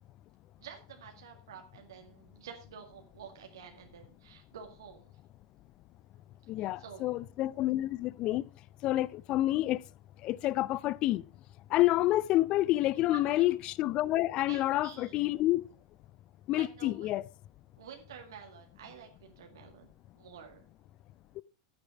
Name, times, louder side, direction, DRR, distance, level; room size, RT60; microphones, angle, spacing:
voice 1, 0.6-5.1 6.6-7.2 13.1-13.4 14.5-15.1 16.6-17.1 17.8-19.9 20.1-20.7, right 7 dB, 75° right, 1.9 m, -50 dB
voice 2, 6.5-8.5 8.8-9.8 10.2-11.2 11.7-15.6 16.5-17.3, left 16 dB, 45° left, 0.5 m, -28 dB
9.9 x 9.5 x 4.7 m
hypercardioid pair, 95°, 2 cm